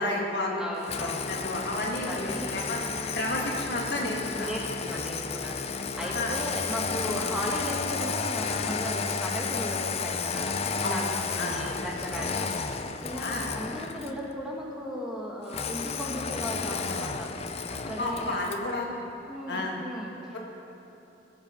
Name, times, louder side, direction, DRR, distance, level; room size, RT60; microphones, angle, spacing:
voice 1, 0.0-0.6 1.0-2.8 3.1-4.5 6.0-6.4 10.8-11.0 11.4-11.6 13.2-13.5 18.0-19.1 19.5-19.8, left 1 dB, 60° left, -1 dB, 1.8 m, -31 dB
voice 2, 0.6-1.3 1.9-2.5 2.9-3.0 4.4-17.3 17.7-18.4 19.3-20.4, equal, 5° right, -3 dB, 1.2 m, -36 dB
Engine starting, 0.8-14.2 15.5-18.7, left 5 dB, 35° left, 0.5 m, -32 dB
18.5 x 7.4 x 5.1 m, 2.9 s
head